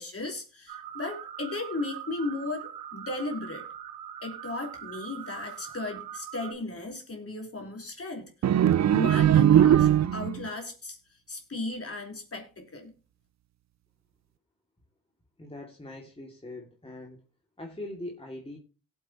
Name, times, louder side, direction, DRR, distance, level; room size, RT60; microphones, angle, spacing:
voice 1, 0.0-3.6 4.2-8.3 8.9-12.9, left 2 dB, 40° left, 4.3 m, -36 dB
sound 1, 0.7-6.5, right 10 dB, 80° right, 1.5 m, -42 dB
sound 2, 8.4-10.5, right 10 dB, 50° right, 0.6 m, -20 dB
voice 2, 15.4-17.2 17.6-18.6, left 1 dB, 15° left, 2.5 m, -41 dB
18.0 x 8.0 x 3.0 m
supercardioid pair, 50°, 36 cm